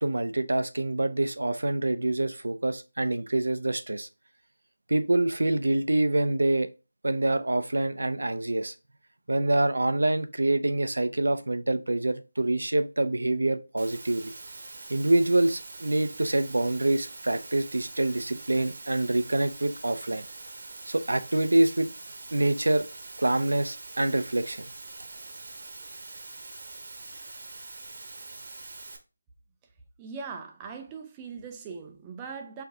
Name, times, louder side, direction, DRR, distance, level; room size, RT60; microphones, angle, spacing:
voice 1, 0.0-4.1 4.9-6.7 7.0-8.7 9.3-14.3 14.9-20.2 20.9-21.9 22.3-22.8 23.2-24.7, right 2 dB, 80° right, 0.6 m, -26 dB
Water, 13.8-29.0, right 2 dB, 45° right, 1.0 m, -44 dB
voice 2, 30.0-32.6, right 5 dB, 10° right, 0.5 m, -40 dB
4.5 x 2.7 x 3.5 m
figure-of-eight pair, 170°, 0 cm